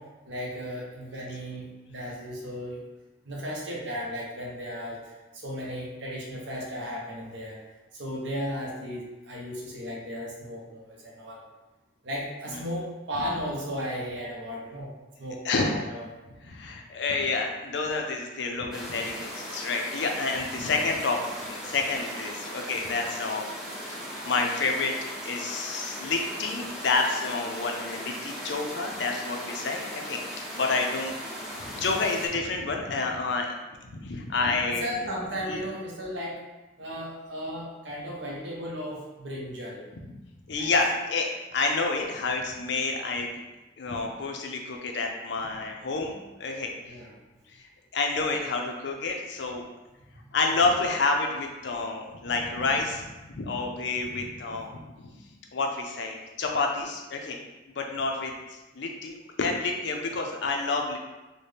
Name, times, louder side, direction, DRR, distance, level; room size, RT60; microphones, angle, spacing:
voice 1, 0.0-2.8 3.2-7.6 7.9-11.4 12.0-14.9 15.2-16.1 34.7-36.4 36.8-39.9 40.6-40.8 46.8-47.2, equal, 65° right, -3 dB, 0.9 m, -35 dB
voice 2, 16.4-23.5 23.9-24.0 24.2-24.9 25.2-31.2 31.7-33.5 33.8-34.9 35.5-35.6 40.5-41.3 41.5-43.3 43.8-46.7 47.9-49.6 50.3-53.1 53.3-54.7 55.5-57.4 57.8-61.0, left 3 dB, 65° left, 2 dB, 0.5 m, -29 dB
sound 1, 18.7-32.3, equal, ahead, 0.5 m, -38 dB
4.1 x 2.1 x 3.3 m, 1.1 s
head